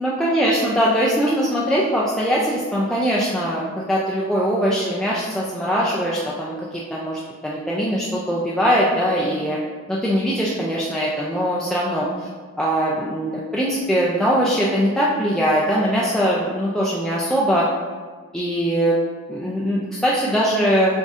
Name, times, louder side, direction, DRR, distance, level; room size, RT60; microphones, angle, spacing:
voice 1, 0.0-9.6 9.9-12.3 12.6-17.7 18.3-19.0 19.3-21.0, equal, 5° left, -6 dB, 0.4 m, -21 dB
7.2 x 2.6 x 2.4 m, 1.5 s
head